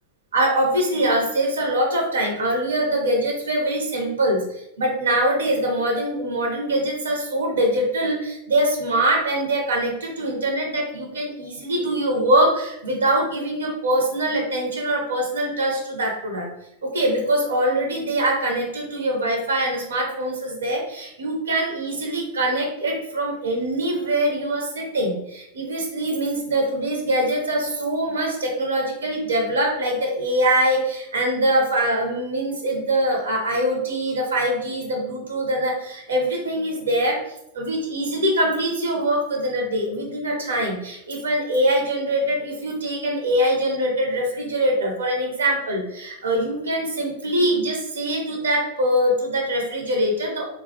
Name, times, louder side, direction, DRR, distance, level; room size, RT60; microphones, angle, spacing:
voice 1, 0.3-16.5 16.8-37.2 37.5-50.4, right 1 dB, 70° right, 1 dB, 0.5 m, -23 dB
2.2 x 2.0 x 2.7 m, 0.81 s
figure-of-eight pair, 90°, 0 cm